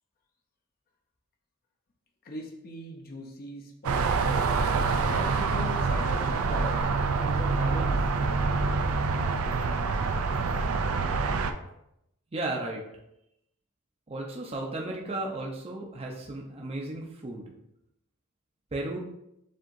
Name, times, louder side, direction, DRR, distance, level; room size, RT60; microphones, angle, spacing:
voice 1, 2.2-4.3 5.1-6.7 7.2-8.0, left 1 dB, 45° left, 1 dB, 0.7 m, -40 dB
sound 1, 3.8-11.5, right 4 dB, 85° right, 0.4 m, -26 dB
voice 2, 12.3-12.8 14.1-17.4 18.7-19.0, right 2 dB, 30° right, -1 dB, 0.6 m, -34 dB
7.4 x 2.8 x 2.6 m, 0.82 s
head